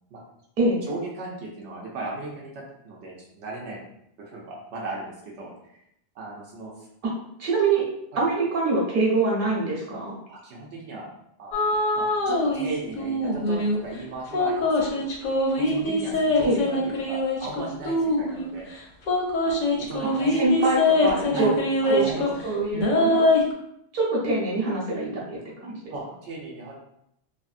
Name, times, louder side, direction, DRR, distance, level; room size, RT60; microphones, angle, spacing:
voice 1, 0.8-3.8 4.2-5.5 6.1-6.9 8.1-8.2 10.3-11.1 11.4-15.1 15.6-18.7 19.4-20.4 21.3-22.3 25.9-26.8, right 2 dB, 85° right, -3 dB, 1.0 m, -37 dB
voice 2, 7.4-7.9 8.2-10.2 16.4-16.6 20.3-21.5 21.9-22.0 22.4-23.3 23.9-25.8, right 3 dB, 50° right, -5 dB, 1.0 m, -24 dB
sound 1, 11.5-12.7 13.0-13.8 14.3-18.5 19.1-22.4 22.7-23.5, left 2 dB, 55° left, 0.6 m, -23 dB
2.7 x 2.6 x 2.4 m, 0.76 s
omnidirectional pair, 1.2 m